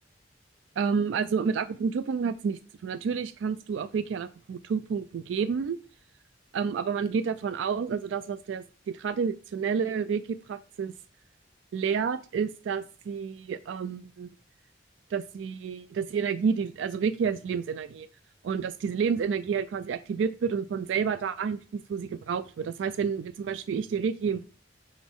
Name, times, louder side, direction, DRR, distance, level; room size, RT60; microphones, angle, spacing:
voice 1, 0.8-5.8 6.5-10.9 11.7-14.3 15.1-18.1 18.4-24.4, right 6 dB, 75° right, 13 dB, 0.3 m, -30 dB
6.0 x 5.0 x 3.6 m, 0.40 s
head